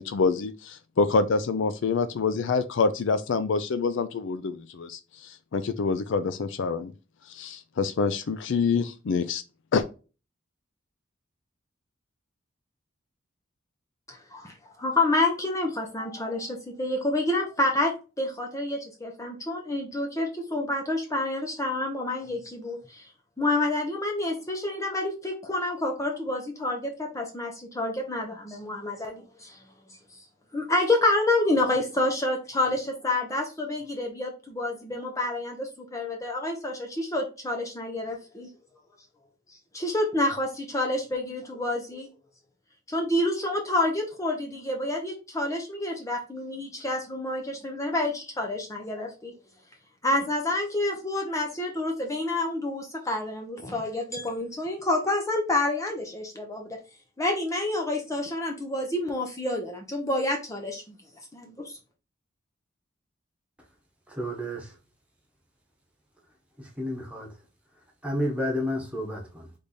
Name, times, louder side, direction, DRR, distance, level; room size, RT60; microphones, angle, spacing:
voice 1, 0.0-6.9 7.3-9.4 9.7-9.8, left 4 dB, 65° left, 0.4 m, -26 dB
voice 2, 14.1-23.1 23.4-29.6 30.5-38.5 39.7-42.1 42.9-49.3 50.0-56.8 57.2-61.0 61.3-61.8, left 2 dB, 15° left, 0.7 m, -28 dB
voice 3, 64.2-64.7 66.8-67.3 68.0-69.5, equal, 5° right, 1.3 m, -30 dB
3.4 x 3.4 x 4.0 m
head